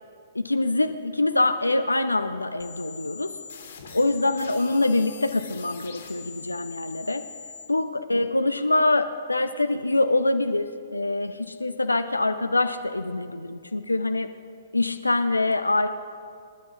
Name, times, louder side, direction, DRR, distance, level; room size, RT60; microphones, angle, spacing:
voice 1, 0.3-3.3 3.9-7.2 7.7-14.3 14.7-15.9, left 2 dB, 80° left, 9 dB, 0.5 m, -24 dB
sound 1, 2.6-7.6, left 6 dB, 55° left, 2.0 m, -43 dB
25.5 x 11.0 x 2.8 m, 2.2 s
figure-of-eight pair, 115°, 0 cm